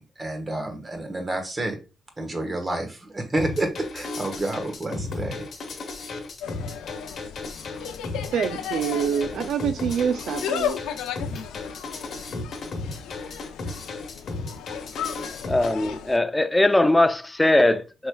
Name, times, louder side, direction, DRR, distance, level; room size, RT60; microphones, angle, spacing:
voice 1, 0.0-1.8 2.2-5.4, right 2 dB, 25° right, 1.1 m, -29 dB
sound 1, 3.4-15.7, left 3 dB, 55° left, 0.9 m, -35 dB
Insect, 6.4-16.2, left 9 dB, 90° left, 0.4 m, -35 dB
voice 2, 8.3-10.8, right 7 dB, 65° right, 0.3 m, -26 dB
voice 3, 15.5-18.1, left 1 dB, 10° left, 0.4 m, -20 dB
4.4 x 3.1 x 2.2 m
cardioid pair, 90°, 0 cm